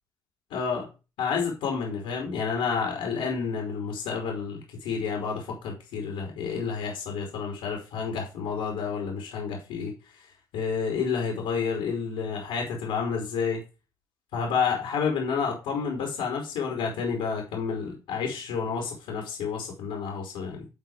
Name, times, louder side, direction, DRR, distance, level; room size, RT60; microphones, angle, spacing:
voice 1, 0.5-0.9 1.2-9.9 10.5-13.6 14.3-20.7, left 6 dB, 85° left, 0 dB, 3.2 m, -30 dB
10.5 x 3.9 x 4.9 m, 0.30 s
supercardioid pair, 55°, 9 cm